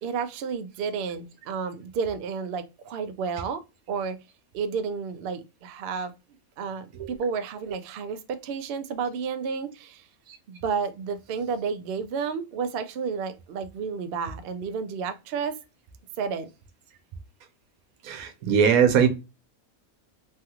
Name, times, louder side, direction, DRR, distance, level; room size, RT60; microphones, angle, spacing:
voice 1, 0.0-3.6 3.9-4.2 4.5-6.1 6.6-10.1 10.5-15.6 16.2-16.5, right 5 dB, 70° right, 0.5 m, -31 dB
voice 2, 18.0-19.1, right 7 dB, 90° right, 1.1 m, -20 dB
3.2 x 2.4 x 2.8 m
omnidirectional pair, 1.5 m